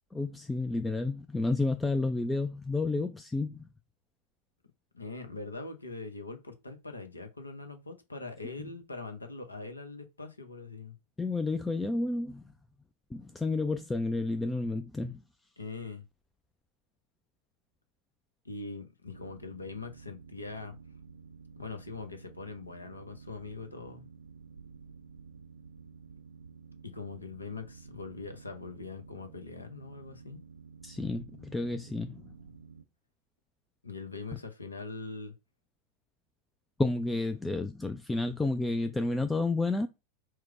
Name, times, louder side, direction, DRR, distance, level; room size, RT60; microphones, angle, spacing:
voice 1, 0.1-3.7 11.2-12.4 13.1-15.2 30.8-32.3 36.8-39.9, left 2 dB, 10° left, 0.3 m, -31 dB
voice 2, 4.9-10.9 15.6-16.0 18.4-20.8 21.6-24.1 26.8-30.4 33.8-35.3, left 3 dB, 80° left, 0.8 m, -42 dB
Boat Water vehicle, 19.0-32.8, right 5 dB, 80° right, 0.4 m, -52 dB
4.6 x 2.1 x 4.7 m
figure-of-eight pair, 90°, 0 cm